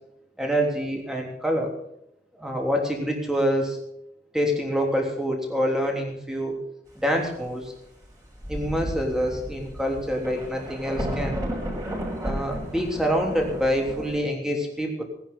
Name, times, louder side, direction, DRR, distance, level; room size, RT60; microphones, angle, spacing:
voice 1, 0.4-1.7 2.4-3.8 4.3-6.6 6.9-7.7 8.5-11.4 12.2-15.0, equal, 5° right, 0 dB, 3.2 m, -26 dB
Thunder, 8.0-8.1 8.4-14.2, equal, 20° right, 5.0 m, -33 dB
18.5 x 10.5 x 5.6 m, 0.79 s
head